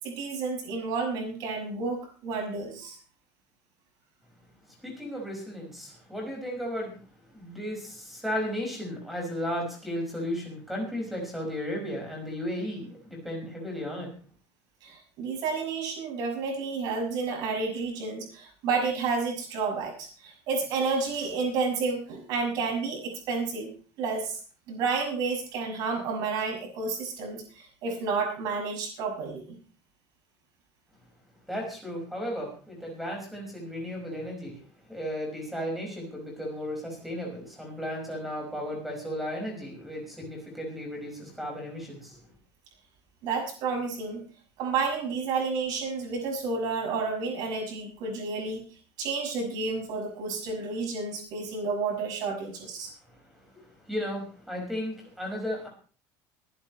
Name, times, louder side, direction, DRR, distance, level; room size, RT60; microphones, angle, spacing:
voice 1, 0.0-3.0 14.8-23.7 24.0-24.4 24.7-29.6 43.2-44.2 44.6-48.6 49.0-52.9, right 4 dB, 50° right, 1 dB, 6.5 m, -30 dB
voice 2, 4.8-14.1 31.5-34.6 34.9-42.2 53.1-55.7, equal, ahead, -1 dB, 5.7 m, -35 dB
24.0 x 11.0 x 3.2 m, 0.39 s
cardioid pair, 175°, 9 cm